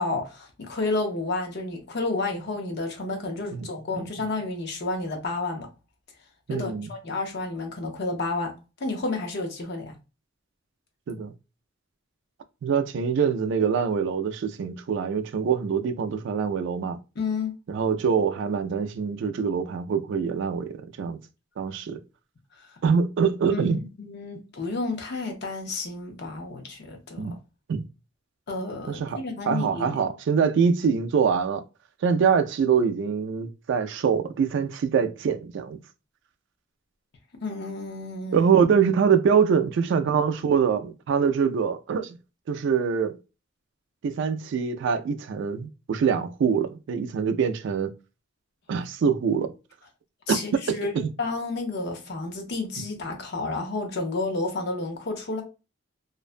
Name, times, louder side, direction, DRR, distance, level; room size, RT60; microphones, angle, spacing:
voice 1, 0.0-5.7 6.5-8.5 8.8-10.0 17.2-17.5 22.6-22.7 23.5-27.2 28.5-30.0 37.4-38.5 50.3-50.9 51.2-55.4, left 3 dB, 55° left, 0.6 m, -31 dB
voice 2, 6.5-6.9 11.1-11.3 12.6-17.0 17.7-21.2 21.6-22.0 22.8-23.8 27.2-27.4 27.7-27.8 28.9-29.2 29.5-31.6 32.0-35.8 38.3-42.2 42.5-43.1 44.0-47.9 48.7-49.5 50.3-50.4 50.7-51.1, right 6 dB, 60° right, 0.3 m, -24 dB
2.5 x 2.1 x 2.4 m
head